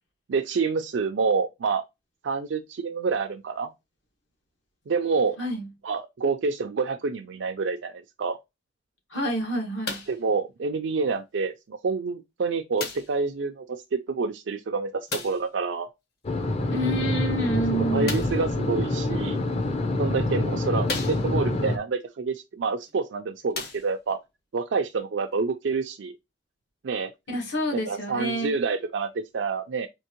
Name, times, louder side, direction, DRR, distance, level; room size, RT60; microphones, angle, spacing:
voice 1, 0.3-1.8 2.2-3.7 4.9-5.4 5.8-8.4 10.1-15.9 17.7-19.4 20.0-24.2 24.5-26.1 26.8-27.1 27.7-29.9, right 4 dB, 75° right, 0.4 m, -28 dB
voice 2, 9.1-10.0 16.7-18.2 27.3-28.6, right 1 dB, 75° left, 1.7 m, -28 dB
sound 1, 9.8-10.3 11.2-11.3 12.8-13.2 15.1-15.5 18.0-18.5 19.4-19.5 20.2-20.3 20.8-21.6 22.8-22.9 23.4-24.2 25.0-25.1, left 4 dB, 60° left, 1.3 m, -35 dB
sound 2, 16.2-21.8, left 2 dB, 35° left, 0.6 m, -26 dB
4.4 x 2.8 x 2.9 m
head